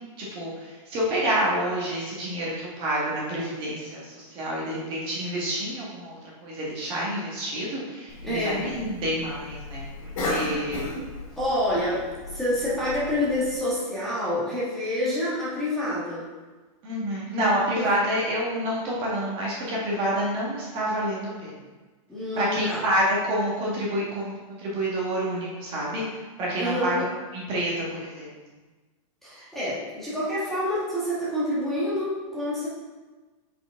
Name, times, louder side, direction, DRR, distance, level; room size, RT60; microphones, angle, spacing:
voice 1, 0.2-9.9 10.2-10.9 16.8-21.5 22.4-27.0 27.3-28.3, right 1 dB, 30° right, -5 dB, 1.4 m, -28 dB
Cough, 8.1-13.5, left 1 dB, 60° left, 1.9 m, -35 dB
voice 2, 8.2-8.6 10.4-10.6 11.4-16.3 17.8-17.9 22.1-22.8 26.6-26.9 29.2-32.7, left 1 dB, ahead, -10 dB, 1.5 m, -27 dB
6.5 x 5.0 x 3.6 m, 1.3 s
supercardioid pair, 160°, 18 cm